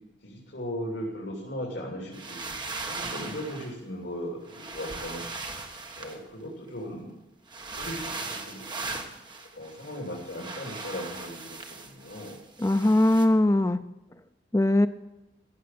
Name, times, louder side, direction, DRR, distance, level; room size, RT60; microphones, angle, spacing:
voice 1, 0.2-5.2 6.0-7.1 7.7-9.0 9.5-11.6 11.8-12.4, equal, 75° left, -3 dB, 3.2 m, -37 dB
sound 1, 2.1-3.7 4.5-6.7 7.5-13.3, right 3 dB, 25° right, 1.4 m, -38 dB
voice 2, 12.6-13.8 14.5-14.9, left 1 dB, 15° left, 11 dB, 0.4 m, -21 dB
15.5 x 7.4 x 7.6 m, 1.0 s
head